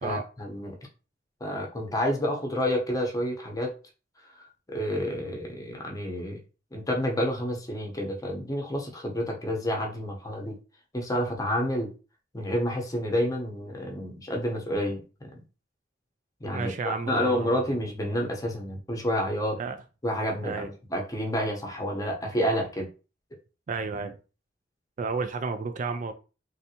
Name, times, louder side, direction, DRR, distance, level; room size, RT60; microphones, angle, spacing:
voice 1, 0.0-0.8 1.4-3.7 4.7-6.4 6.7-10.5 10.9-11.9 12.3-15.0 16.4-19.6 20.0-22.9, equal, 20° left, 0.8 m, -29 dB
voice 2, 16.5-17.8 19.6-19.8 20.4-20.7 23.7-24.2 25.0-26.1, right 4 dB, 40° right, 0.3 m, -32 dB
3.3 x 2.6 x 2.8 m
head